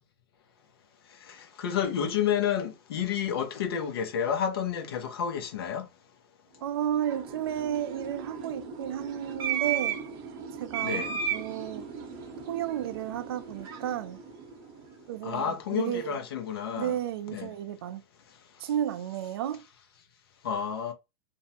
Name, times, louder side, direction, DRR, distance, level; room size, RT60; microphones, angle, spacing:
voice 1, 1.1-5.9 10.8-11.1 15.2-17.0 17.3-17.5 20.4-20.9, left 8 dB, 75° left, 0.7 m, -30 dB
voice 2, 6.6-10.0 10.6-11.9 12.5-14.2 15.1-16.2 16.7-18.0 18.6-19.6, right 10 dB, 75° right, 0.4 m, -32 dB
sound 1, 6.7-15.2, right 7 dB, 35° right, 0.7 m, -36 dB
2.5 x 2.1 x 2.8 m
supercardioid pair, 140°, 13 cm